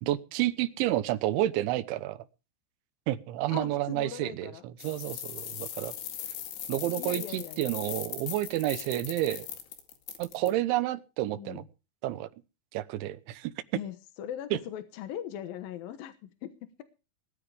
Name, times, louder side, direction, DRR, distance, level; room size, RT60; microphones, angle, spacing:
voice 1, 0.0-2.3 3.1-5.9 6.7-9.5 10.2-11.6 12.0-12.3 12.7-13.5 14.5-14.6, right 14 dB, 90° right, 13 dB, 3.4 m, -30 dB
voice 2, 3.5-4.6 7.0-7.6 11.3-11.7 13.7-16.5, left 10 dB, 65° left, 9 dB, 2.5 m, -40 dB
sound 1, 4.8-10.5, left 10 dB, 90° left, 4.5 m, -39 dB
20.5 x 13.5 x 3.4 m, 0.32 s
omnidirectional pair, 5.2 m